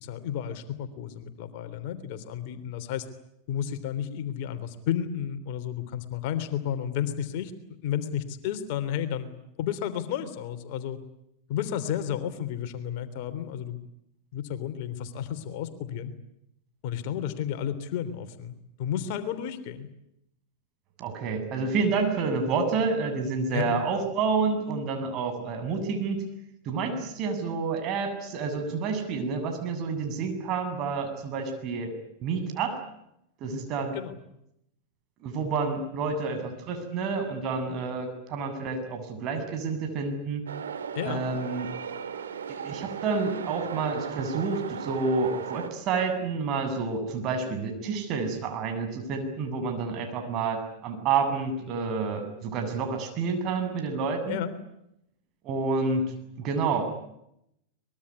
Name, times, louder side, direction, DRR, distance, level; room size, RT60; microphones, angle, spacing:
voice 1, 0.0-3.1 3.5-7.5 7.8-9.3 9.6-11.0 11.5-13.8 14.3-16.1 16.8-19.9 23.5-23.8 33.9-34.2 40.9-41.3 54.3-54.5, left 9 dB, 55° left, 10 dB, 3.3 m, -32 dB
voice 2, 21.0-26.2 26.6-31.9 32.2-32.8 33.4-34.0 35.2-40.5 41.1-41.7 42.5-54.4 55.4-56.1 56.4-56.9, right 4 dB, 45° right, 6 dB, 7.7 m, -29 dB
sound 1, 40.5-45.7, right 7 dB, 80° right, 2.9 m, -37 dB
24.0 x 22.0 x 9.8 m, 0.79 s
hypercardioid pair, 100°, 0 cm